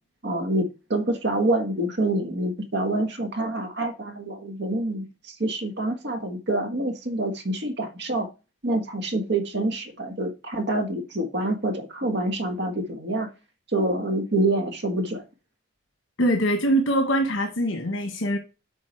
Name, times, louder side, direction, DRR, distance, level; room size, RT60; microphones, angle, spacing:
voice 1, 0.2-8.3 8.6-13.3 13.7-15.2, right 1 dB, 60° right, 1.5 m, -26 dB
voice 2, 16.2-18.4, right 1 dB, 70° left, 1.2 m, -23 dB
8.4 x 4.6 x 4.5 m
head